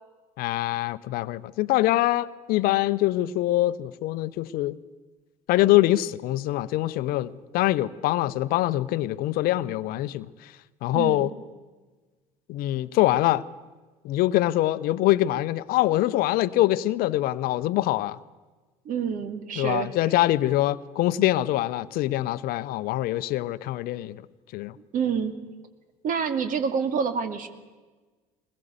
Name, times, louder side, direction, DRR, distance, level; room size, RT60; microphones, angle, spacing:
voice 1, 0.4-4.8 5.5-10.3 10.8-11.3 12.5-13.4 14.0-18.2 19.6-24.2 24.5-24.8, left 16 dB, 55° left, 0.8 m, -24 dB
voice 2, 10.9-11.3 18.8-19.9 24.9-25.4 26.0-27.5, right 6 dB, 50° right, 2.5 m, -27 dB
22.5 x 21.0 x 8.2 m
figure-of-eight pair, 65°, 18 cm